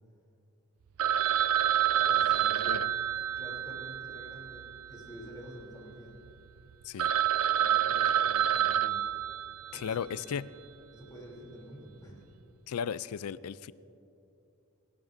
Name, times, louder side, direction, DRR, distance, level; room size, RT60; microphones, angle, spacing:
Telephone, 1.0-5.3 5.6-5.7 6.3-6.4 6.7-6.8 7.0-10.0, right 10 dB, 75° right, 0.4 m, -28 dB
voice 1, 1.9-2.9 3.2-6.2 7.6-9.0 9.7-10.4 10.9-12.3, equal, 15° left, -3 dB, 3.1 m, -48 dB
voice 2, 9.7-10.5 12.7-13.7, left 7 dB, 85° left, 18 dB, 0.4 m, -35 dB
28.5 x 12.5 x 2.6 m, 2.8 s
head